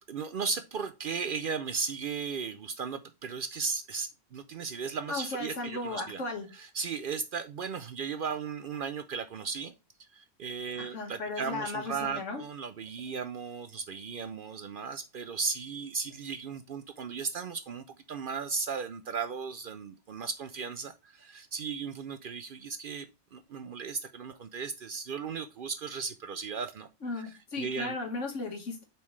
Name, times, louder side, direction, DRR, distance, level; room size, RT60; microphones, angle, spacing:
voice 1, 0.1-6.2 6.5-9.7 10.1-26.9 27.2-28.0, right 5 dB, 60° right, 0.6 m, -36 dB
voice 2, 5.1-6.5 10.8-12.4 27.0-28.8, left 3 dB, 80° left, 2.0 m, -36 dB
7.0 x 4.3 x 3.2 m
omnidirectional pair, 1.2 m